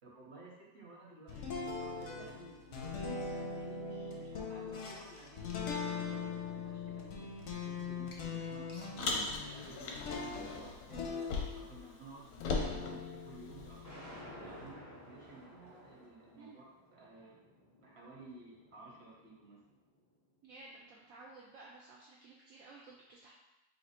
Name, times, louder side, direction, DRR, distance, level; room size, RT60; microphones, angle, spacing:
voice 1, 0.0-11.1 11.6-16.6 16.9-17.4 17.8-19.6, right 2 dB, 45° right, -4 dB, 1.0 m, -55 dB
sound 1, 1.3-11.9 12.3-14.7, left 4 dB, 65° left, 0.8 m, -42 dB
Car, 9.0-11.8 12.0-13.9, left 3 dB, 85° left, 1.3 m, -39 dB
sound 2, 13.8-20.0, equal, 30° left, 0.3 m, -54 dB
voice 2, 20.4-23.3, right 3 dB, 70° right, -4 dB, 0.8 m, -55 dB
3.3 x 2.7 x 4.2 m, 0.98 s
omnidirectional pair, 1.8 m